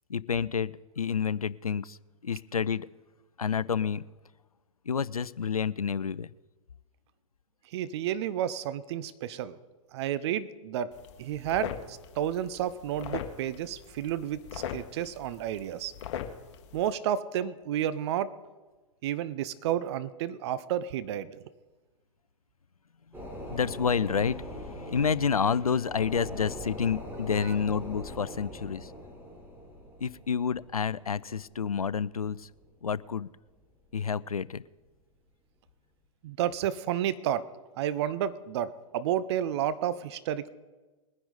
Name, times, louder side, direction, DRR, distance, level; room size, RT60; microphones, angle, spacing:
voice 1, 0.1-2.0 2.2-2.9 3.4-4.0 4.9-6.3 23.5-28.9 30.0-32.5 32.8-33.3 33.9-34.6, left 6 dB, 85° left, 20 dB, 0.4 m, -29 dB
voice 2, 7.7-9.6 9.9-15.9 16.7-18.3 19.0-21.4 27.4-27.5 36.2-37.5 37.8-40.5, right 10 dB, 50° right, 15 dB, 0.8 m, -31 dB
sound 1, 10.9-16.9, left 9 dB, 55° left, 1.4 m, -41 dB
sound 2, 23.1-33.1 33.5-33.6, equal, 10° right, 4.0 m, -42 dB
21.0 x 10.0 x 4.1 m, 1.2 s
figure-of-eight pair, 105°, 18 cm